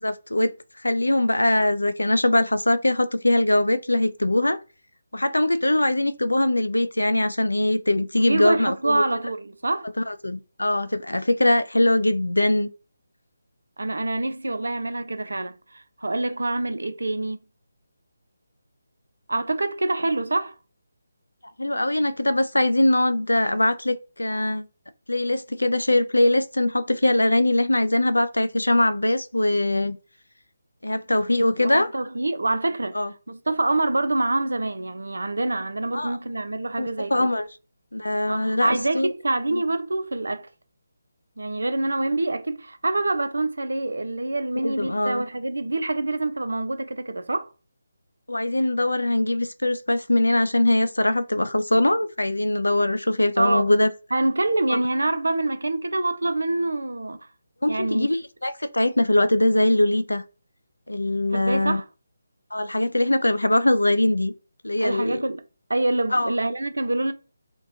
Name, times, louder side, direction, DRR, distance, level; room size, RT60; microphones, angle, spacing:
voice 1, 0.0-0.5 0.8-4.6 5.1-9.0 10.0-12.7 21.6-24.7 25.1-30.0 30.8-31.9 32.9-33.1 35.9-36.2 36.8-37.5 37.9-39.1 39.5-39.6 44.6-45.2 48.3-53.9 54.7-54.8 57.6-60.2 60.9-61.8 62.5-64.3 64.6-65.2 66.1-66.3, left 1 dB, 85° left, 0.3 m, -22 dB
voice 2, 8.2-9.9 13.8-17.4 19.3-20.6 31.6-33.0 33.3-37.3 38.3-40.5 41.4-47.5 53.4-53.7 54.1-57.3 57.7-58.1 61.3-61.8 64.8-65.4 65.7-67.1, right 2 dB, 70° right, 0.4 m, -26 dB
2.8 x 2.2 x 2.5 m
figure-of-eight pair, 150°, 0 cm